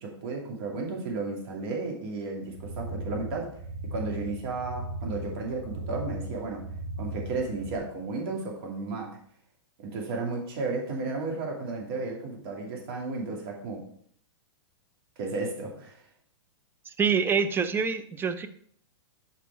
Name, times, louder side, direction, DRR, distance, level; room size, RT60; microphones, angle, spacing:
voice 1, 0.0-3.5 3.9-6.7 7.0-9.2 9.8-13.9 15.2-16.0, right 3 dB, 55° right, 0 dB, 2.4 m, -33 dB
sound 1, 2.5-7.8, right 1 dB, 80° right, 2.6 m, -37 dB
voice 2, 16.9-18.5, right 6 dB, 15° right, 10 dB, 0.5 m, -26 dB
6.1 x 5.7 x 4.5 m, 0.62 s
hypercardioid pair, 120°, 15 cm